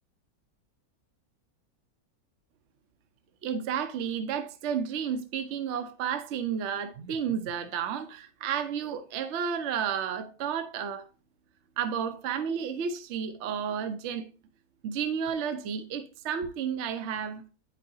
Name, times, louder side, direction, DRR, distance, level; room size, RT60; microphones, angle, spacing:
voice 1, 3.4-11.1 11.8-14.2 14.8-17.4, right 7 dB, 55° right, 0.9 m, -32 dB
9.0 x 5.4 x 2.7 m
omnidirectional pair, 1.6 m